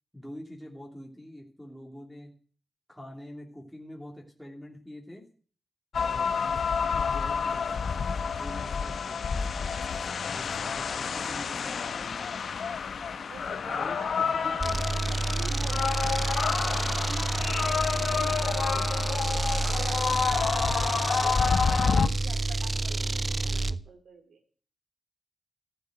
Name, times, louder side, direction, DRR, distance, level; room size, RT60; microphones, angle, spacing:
voice 1, 0.1-2.3 2.9-5.3 5.9-6.6 6.9-8.1 8.4-9.4 10.3-12.4 13.7-14.6, equal, ahead, -1 dB, 2.9 m, -45 dB
sound 1, 5.9-22.1, left 6 dB, 70° left, 0.9 m, -29 dB
voice 2, 10.5-10.9 13.3-14.1 14.4-17.8 18.1-19.0 19.3-24.4, right 4 dB, 85° right, 6 dB, 3.8 m, -47 dB
sound 2, 14.6-23.8, right 3 dB, 30° right, 0.6 m, -29 dB
15.0 x 8.1 x 9.2 m, 0.42 s
wide cardioid pair, 155°, 0 cm